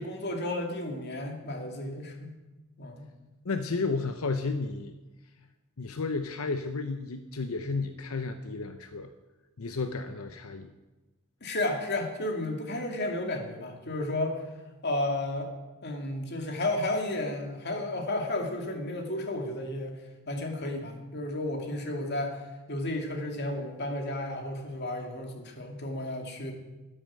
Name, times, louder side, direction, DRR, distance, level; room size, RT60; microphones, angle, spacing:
voice 1, 0.0-2.3 2.8-3.1 11.4-14.4 14.8-15.5 15.8-20.0 20.3-22.4 22.7-26.5, left 1 dB, 50° left, 3 dB, 2.5 m, -32 dB
voice 2, 3.4-4.9 5.8-9.1 9.6-10.7, left 3 dB, 90° left, 8 dB, 0.8 m, -32 dB
12.5 x 10.5 x 7.5 m, 1.2 s
head